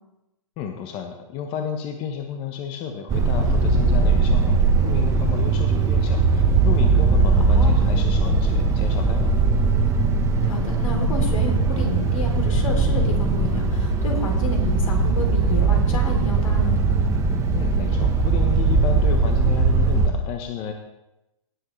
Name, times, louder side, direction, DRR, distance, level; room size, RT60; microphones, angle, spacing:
voice 1, 0.6-9.4 17.5-20.7, left 7 dB, 30° left, 4 dB, 1.0 m, -32 dB
sound 1, 3.1-20.1, right 4 dB, 15° right, 1.2 m, -20 dB
voice 2, 7.4-7.8 10.4-16.8, left 2 dB, 75° left, 2 dB, 3.2 m, -31 dB
17.5 x 7.7 x 3.2 m, 0.94 s
hypercardioid pair, 135°, 17 cm